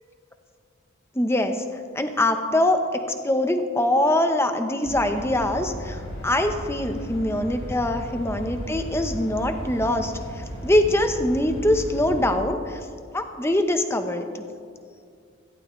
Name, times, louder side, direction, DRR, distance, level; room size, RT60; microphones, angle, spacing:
voice 1, 1.2-1.6 1.9-12.8 13.1-14.4, left 1 dB, 10° left, 7 dB, 0.7 m, -23 dB
sound 1, 4.8-12.3, equal, 60° left, 3.3 m, -35 dB
16.5 x 15.5 x 3.1 m, 2.2 s
head